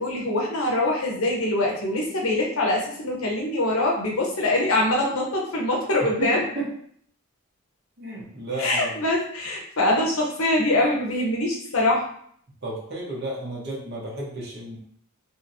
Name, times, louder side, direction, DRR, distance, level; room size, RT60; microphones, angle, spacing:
voice 1, 0.0-6.4 8.6-12.0, left 1 dB, 70° left, -1 dB, 0.8 m, -23 dB
voice 2, 6.0-6.7 8.0-9.0 12.6-14.8, right 2 dB, 50° right, -4 dB, 0.9 m, -32 dB
2.8 x 2.7 x 2.6 m, 0.62 s
head